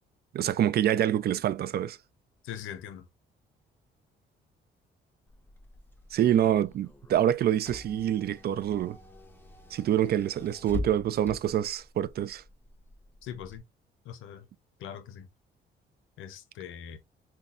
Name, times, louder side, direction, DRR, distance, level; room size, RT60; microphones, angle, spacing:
voice 1, 0.3-2.0 6.1-9.0 9.7-12.4, right 11 dB, 50° right, 0.4 m, -26 dB
voice 2, 2.4-3.0 13.2-13.6 14.1-14.4 14.8-15.3 16.2-17.0, left 9 dB, 85° left, 0.5 m, -41 dB
Car / Engine, 5.3-13.6, left 3 dB, 10° left, 0.9 m, -44 dB
5.3 x 2.2 x 2.4 m
cardioid pair, 90°, 20 cm